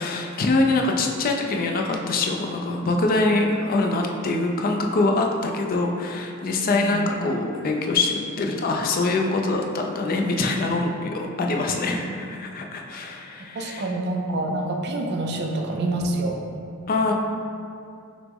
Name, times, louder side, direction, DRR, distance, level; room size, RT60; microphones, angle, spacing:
voice 1, 0.0-13.9 16.9-17.1, left 2 dB, 40° left, 2 dB, 0.4 m, -24 dB
voice 2, 6.7-7.1 11.7-11.8 12.1-12.2 13.6-16.4, right 2 dB, 50° right, 2 dB, 0.4 m, -27 dB
5.8 x 2.0 x 3.5 m, 2.4 s
head